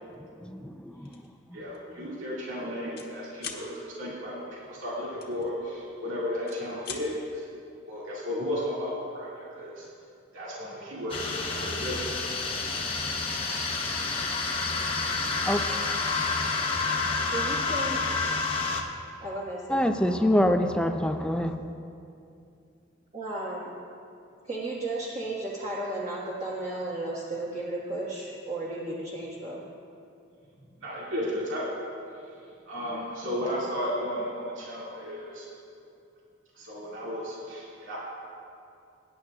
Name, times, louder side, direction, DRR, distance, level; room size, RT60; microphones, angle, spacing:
voice 1, 0.4-1.1 15.5-15.9 19.7-21.6, equal, 5° left, 6 dB, 0.5 m, -26 dB
sound 1, 1.1-1.3 1.7-1.9 2.2-3.1 3.4-3.6 5.2-6.0 6.3-7.0, left 7 dB, 55° left, 1.3 m, -40 dB
voice 2, 1.5-7.5 7.9-9.9 10.3-12.2 30.8-31.7 32.7-35.5 36.6-38.0, equal, 80° right, -7 dB, 2.2 m, -34 dB
sound 2, 11.1-18.8, left 4 dB, 25° left, 0.9 m, -29 dB
voice 3, 17.3-18.0 19.2-19.8 23.1-23.7 24.4-29.6 33.4-33.5, right 2 dB, 35° right, -7 dB, 1.4 m, -34 dB
23.5 x 10.0 x 2.4 m, 2.5 s
head